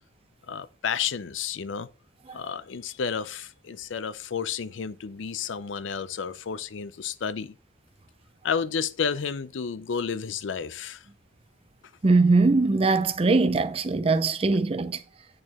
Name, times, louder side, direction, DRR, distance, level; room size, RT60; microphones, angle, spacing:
voice 1, 0.5-1.9 2.3-7.5 8.4-11.0, left 6 dB, 80° left, 0.5 m, -31 dB
voice 2, 2.2-2.6 11.1-11.2 12.0-15.3, right 3 dB, 30° right, 0.5 m, -22 dB
8.8 x 4.3 x 2.9 m
head